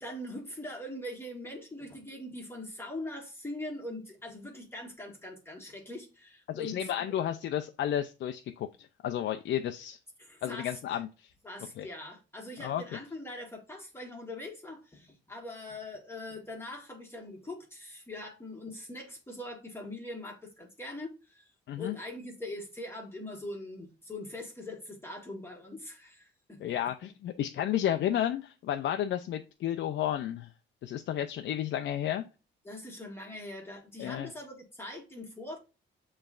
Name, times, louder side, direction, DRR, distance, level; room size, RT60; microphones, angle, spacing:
voice 1, 0.0-6.9 10.2-11.0 11.4-21.5 21.8-26.6 32.6-35.6, left 1 dB, 10° left, 1.5 m, -42 dB
voice 2, 6.5-10.0 10.4-11.3 11.8-11.9 12.6-12.8 21.7-21.9 26.6-30.5 30.8-32.2 34.0-34.3, left 11 dB, 65° left, 0.5 m, -32 dB
6.8 x 3.2 x 2.4 m
cardioid pair, 90°, 20 cm